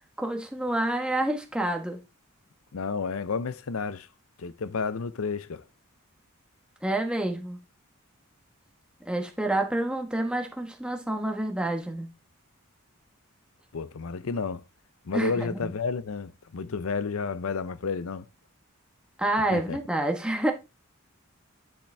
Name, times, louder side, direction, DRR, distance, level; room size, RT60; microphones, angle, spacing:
voice 1, 0.2-2.0 6.8-7.6 9.0-12.1 15.1-15.7 19.2-20.5, right 1 dB, 5° right, 1.2 m, -28 dB
voice 2, 2.7-4.1 4.4-5.6 13.7-14.6 15.0-18.3 19.5-19.8, left 5 dB, 70° left, 0.6 m, -31 dB
10.0 x 5.2 x 3.4 m
head